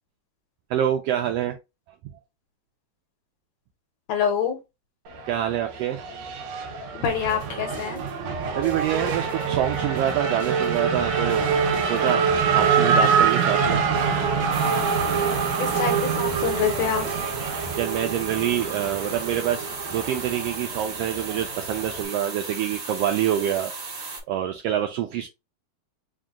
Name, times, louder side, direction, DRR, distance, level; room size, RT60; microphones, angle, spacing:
voice 1, 0.7-1.6 5.3-6.0 8.5-11.5 11.8-13.8 17.8-23.7 24.3-25.3, right 11 dB, 90° right, 1.4 m, -26 dB
voice 2, 4.1-4.6 6.9-8.0 15.6-17.1, left 7 dB, 70° left, 1.9 m, -26 dB
Race car auto racing / Accelerating revving vroom, 5.1-22.1, right 6 dB, 75° right, 2.0 m, -25 dB
sound 1, 7.1-17.8, right 2 dB, 30° right, 1.0 m, -42 dB
sound 2, 14.5-24.2, right 4 dB, 50° right, 1.3 m, -36 dB
4.7 x 2.2 x 3.5 m
omnidirectional pair, 3.3 m